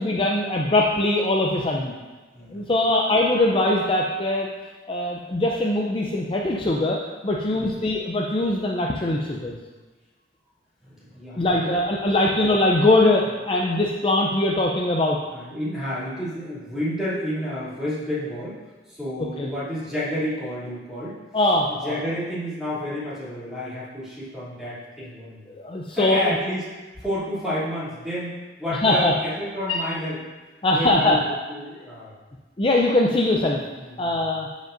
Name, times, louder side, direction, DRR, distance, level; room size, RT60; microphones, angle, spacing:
voice 1, 0.0-1.9 2.5-4.5 4.9-7.0 7.2-9.6 11.4-15.2 19.4-19.5 21.3-22.0 25.6-26.3 28.7-29.1 29.6-29.8 30.6-31.4 32.6-33.6 34.0-34.5, left 2 dB, 30° left, -1 dB, 0.5 m, -21 dB
voice 2, 10.8-11.8 15.3-18.6 18.9-25.5 25.9-26.7 27.0-30.2 30.7-32.1 33.8-34.2, equal, 5° right, -10 dB, 2.6 m, -30 dB
13.0 x 5.1 x 2.6 m, 1.2 s
head